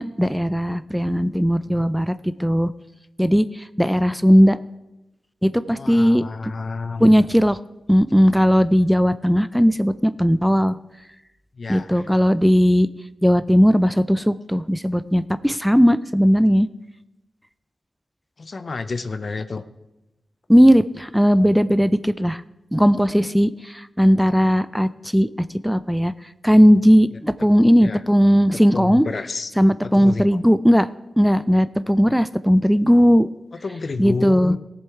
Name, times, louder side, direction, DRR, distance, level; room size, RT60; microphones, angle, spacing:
voice 1, 0.0-2.7 3.2-3.5 3.8-4.6 5.4-6.2 7.0-7.6 7.9-10.8 11.7-12.9 13.2-16.7 20.5-22.4 22.7-25.3 25.6-26.1 26.4-29.0 29.6-30.9 31.2-33.3 34.0-34.6, equal, ahead, 14 dB, 0.4 m, -17 dB
voice 2, 5.7-7.2 11.5-12.1 18.4-19.6 27.8-28.0 28.7-29.5 29.8-30.4 33.2-33.3 33.6-34.6, left 4 dB, 60° left, 11 dB, 0.6 m, -30 dB
16.5 x 7.1 x 4.6 m, 0.97 s
cardioid pair, 45°, 0 cm